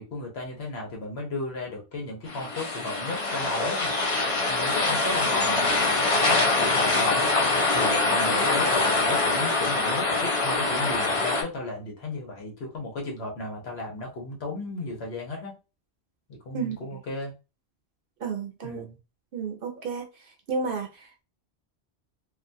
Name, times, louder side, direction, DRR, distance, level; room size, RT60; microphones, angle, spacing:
voice 1, 0.0-3.9 4.4-7.3 7.7-15.6 16.3-17.3 18.6-19.0, left 2 dB, 75° left, 1.2 m, -34 dB
sound 1, 2.3-11.4, left 3 dB, 40° left, 0.5 m, -24 dB
voice 2, 18.2-18.8 19.3-20.1 20.5-21.2, right 5 dB, 60° right, 0.8 m, -31 dB
2.6 x 2.2 x 2.6 m
omnidirectional pair, 1.1 m